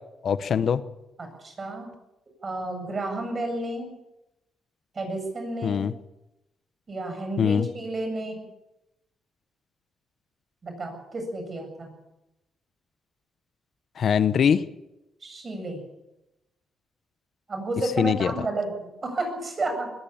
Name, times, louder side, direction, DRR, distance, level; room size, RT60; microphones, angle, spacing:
voice 1, 0.2-0.8 5.6-5.9 7.4-7.7 14.0-14.6 18.0-18.3, left 7 dB, 55° left, 12 dB, 0.9 m, -22 dB
voice 2, 1.2-1.9 2.4-3.9 4.9-5.9 6.9-8.5 10.6-11.9 15.2-15.8 17.5-18.7 19.0-19.9, right 2 dB, 35° right, 5 dB, 7.9 m, -31 dB
21.0 x 17.5 x 7.4 m, 0.93 s
cardioid pair, 120°, 0 cm